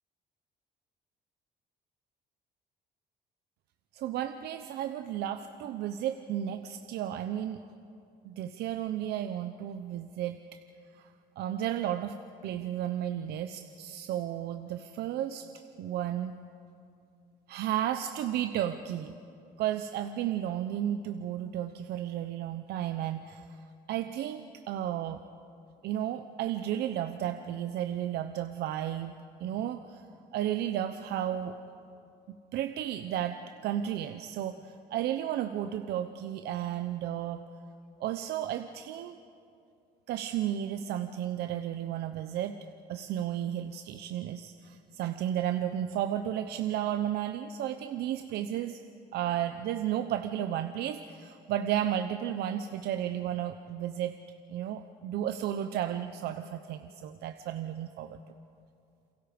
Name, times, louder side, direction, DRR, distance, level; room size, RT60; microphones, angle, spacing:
voice 1, 3.9-7.6 8.2-10.6 10.9-12.2 12.4-15.5 15.8-16.3 17.5-19.1 19.6-25.2 25.8-29.1 29.4-30.0 30.3-31.5 32.3-37.4 38.0-39.2 40.1-42.6 42.9-48.8 49.1-54.2 54.5-58.3, right 11 dB, 75° right, 9 dB, 0.8 m, -33 dB
29.0 x 22.5 x 5.2 m, 2.6 s
cardioid pair, 110°, 17 cm